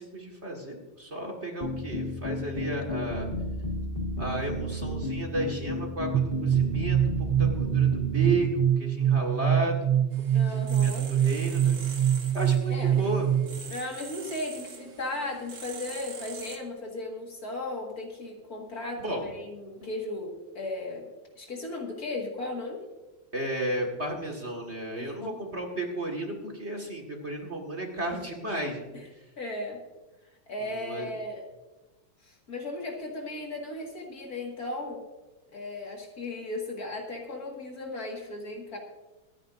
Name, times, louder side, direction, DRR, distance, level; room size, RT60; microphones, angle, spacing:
voice 1, 0.0-3.3 4.2-7.0 7.4-10.0 10.3-12.0 12.3-13.3 19.0-19.3 23.3-28.9 30.6-31.1, right 1 dB, 35° right, 2 dB, 1.9 m, -33 dB
sound 1, 1.6-8.5, left 1 dB, 25° left, 1.8 m, -33 dB
sound 2, 6.1-13.7, right 10 dB, 80° right, 1.5 m, -25 dB
sound 3, 10.1-16.6, right 5 dB, 50° right, 1.7 m, -44 dB
voice 2, 10.3-11.1 12.7-13.0 13.7-21.1 21.4-22.9 25.0-25.4 28.9-29.0 29.4-29.8 30.5-31.4 32.2-35.0 35.5-38.8, left 2 dB, 45° left, 0 dB, 2.3 m, -36 dB
26.0 x 9.9 x 2.6 m, 1.2 s
omnidirectional pair, 2.3 m